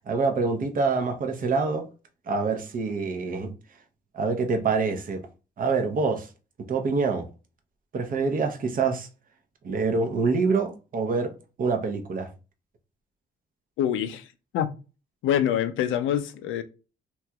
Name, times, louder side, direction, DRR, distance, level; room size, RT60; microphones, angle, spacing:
voice 1, 0.1-1.9 2.3-3.5 4.1-5.2 5.6-6.3 6.7-7.3 7.9-9.1 9.6-11.3 11.6-12.3, right 4 dB, 45° right, 0.7 m, -26 dB
voice 2, 13.8-14.3 14.5-14.7 15.2-16.6, left 10 dB, 85° left, 0.5 m, -25 dB
3.0 x 2.9 x 2.3 m
cardioid pair, 90°, 20 cm